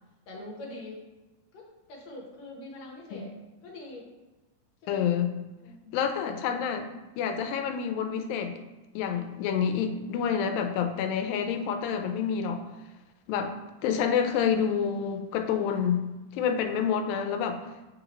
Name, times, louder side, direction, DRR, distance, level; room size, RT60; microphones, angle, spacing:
voice 1, 0.3-1.0 1.5-3.3 3.6-4.1 4.8-5.0 5.6-6.0 6.4-6.7, left 2 dB, 65° left, -2 dB, 2.0 m, -44 dB
voice 2, 4.9-5.3 5.9-6.9 7.2-8.5 9.0-12.6 13.3-13.5 13.8-16.1 16.3-17.6, left 7 dB, 85° left, 6 dB, 2.2 m, -28 dB
8.4 x 3.7 x 3.0 m, 1.1 s
omnidirectional pair, 4.0 m